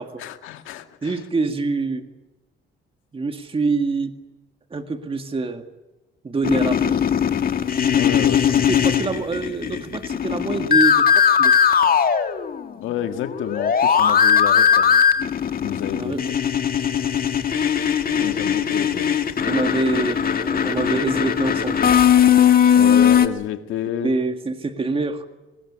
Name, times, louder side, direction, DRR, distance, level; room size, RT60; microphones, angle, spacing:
voice 1, 0.2-1.3 7.9-8.9 12.8-15.0 15.6-16.2 18.2-19.2 22.7-24.1, left 10 dB, 85° left, 7 dB, 1.9 m, -29 dB
voice 2, 1.0-2.1 3.1-4.1 4.7-5.6 6.2-6.9 8.7-11.6 15.9-16.2 18.1-18.3 19.5-21.8 24.0-25.3, right 3 dB, 25° right, 6 dB, 2.0 m, -25 dB
sound 1, 6.4-12.8 13.0-23.3, left 8 dB, 45° left, 2.0 m, -19 dB
24.5 x 20.0 x 9.8 m, 1.1 s
cardioid pair, 90°, 20 cm